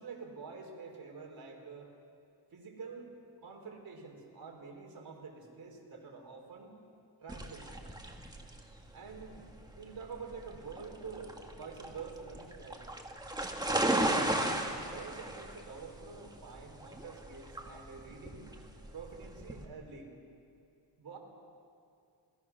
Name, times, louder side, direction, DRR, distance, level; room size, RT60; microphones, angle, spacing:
voice 1, 0.0-1.9 2.5-3.1 3.4-6.8 7.2-7.8 8.9-12.8 13.6-18.6 18.9-20.1 21.0-21.2, right 5 dB, 50° right, 0 dB, 4.3 m, -47 dB
sound 1, 7.3-19.7, right 1 dB, 10° right, 1.7 m, -36 dB
26.5 x 19.0 x 6.1 m, 2.4 s
wide cardioid pair, 130°, 43 cm